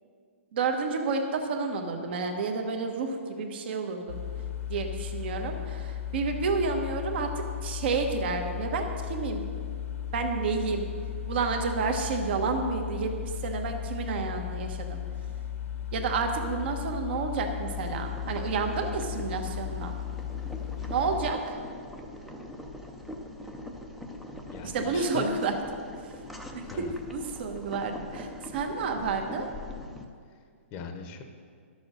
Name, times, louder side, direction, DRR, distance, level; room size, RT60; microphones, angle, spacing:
voice 1, 0.5-4.2 4.7-9.4 10.1-10.9 11.3-15.0 15.9-19.9 20.9-21.6 24.6-25.5 26.5-29.5, right 4 dB, 50° right, 4 dB, 1.3 m, -30 dB
sound 1, 4.1-21.3, left 10 dB, 75° left, 1.0 m, -36 dB
Boiling, 17.3-30.0, left 1 dB, ahead, 0.6 m, -43 dB
voice 2, 20.8-21.2 24.5-25.3 26.6-27.0 30.3-30.4 30.7-31.2, left 5 dB, 25° left, 5 dB, 0.9 m, -41 dB
12.0 x 7.0 x 6.6 m, 2.1 s
hypercardioid pair, 165°, 7 cm